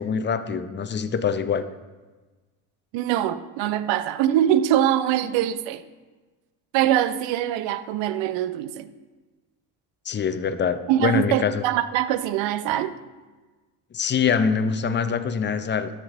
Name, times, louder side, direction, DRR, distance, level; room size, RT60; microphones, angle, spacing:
voice 1, 0.0-1.7 10.0-11.6 13.9-15.9, left 6 dB, 25° left, 0.6 m, -24 dB
voice 2, 2.9-5.8 6.7-8.9 10.9-12.9, right 11 dB, 65° right, 0.7 m, -23 dB
12.5 x 5.0 x 3.6 m
hypercardioid pair, 70°, 49 cm